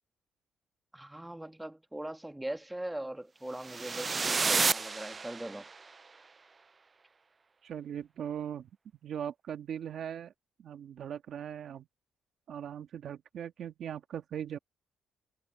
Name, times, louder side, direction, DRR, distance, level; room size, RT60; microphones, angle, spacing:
voice 1, 0.9-5.7, right 1 dB, 10° right, 1.6 m, -40 dB
sound 1, 3.6-5.8, right 4 dB, 30° right, 0.3 m, -30 dB
voice 2, 7.6-8.7 9.0-10.3 10.6-11.9 12.5-14.6, right 9 dB, 65° right, 1.7 m, -39 dB
cardioid pair, 90°, 0 cm